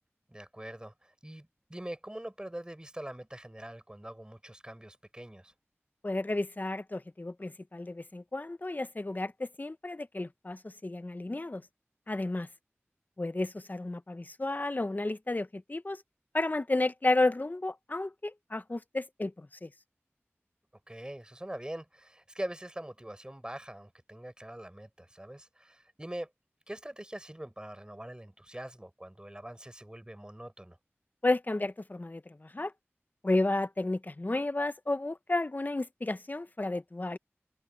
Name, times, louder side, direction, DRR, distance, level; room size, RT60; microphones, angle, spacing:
voice 1, 0.3-5.5 20.9-26.3 26.7-30.8, right 1 dB, 20° right, 4.3 m, -43 dB
voice 2, 6.0-11.6 12.1-12.5 13.2-16.0 16.3-19.7 31.2-32.7 33.2-37.2, left 2 dB, 40° left, 0.8 m, -32 dB
wide cardioid pair, 55°, 5 cm